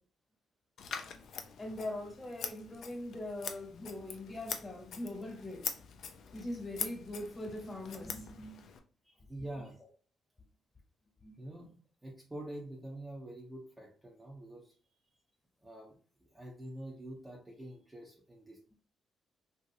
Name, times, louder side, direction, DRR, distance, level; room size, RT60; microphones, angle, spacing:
Scissors, 0.8-8.8, left 7 dB, 70° left, 0.4 m, -44 dB
voice 1, 1.6-5.6 6.3-8.7 11.2-11.4, left 1 dB, 25° left, 1 dB, 1.3 m, -41 dB
voice 2, 9.0-9.8 11.4-14.8 15.6-16.0 16.3-18.6, right 1 dB, 15° right, -1 dB, 0.7 m, -46 dB
2.9 x 2.7 x 2.6 m, 0.40 s
cardioid pair, 90°, 0 cm